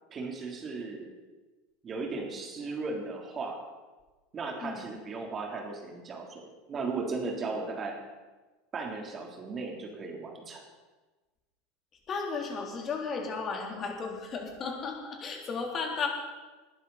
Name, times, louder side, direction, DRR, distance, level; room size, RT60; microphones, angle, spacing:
voice 1, 0.1-1.1 1.8-3.6 4.3-7.9 8.7-10.6, right 3 dB, 30° right, 1 dB, 3.4 m, -36 dB
voice 2, 4.6-4.9 12.1-16.1, left 4 dB, 35° left, 1 dB, 3.4 m, -34 dB
19.5 x 11.5 x 4.2 m, 1.2 s
figure-of-eight pair, 80°, 0 cm